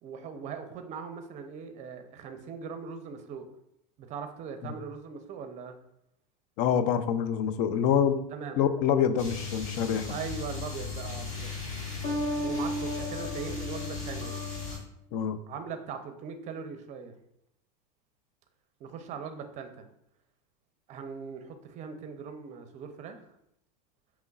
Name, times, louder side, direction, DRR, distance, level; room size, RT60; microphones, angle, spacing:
voice 1, 0.0-3.5 4.0-5.8 8.3-8.6 10.1-11.5 12.4-14.4 15.5-17.1 18.8-19.9 20.9-23.2, right 6 dB, 35° right, 7 dB, 0.5 m, -40 dB
voice 2, 6.6-8.2 8.6-10.1 15.1-15.4, left 8 dB, 50° left, 11 dB, 0.4 m, -26 dB
sound 1, 9.2-14.8, left 2 dB, 35° left, 1.3 m, -34 dB
5.1 x 3.0 x 2.3 m, 0.79 s
supercardioid pair, 125°, 20 cm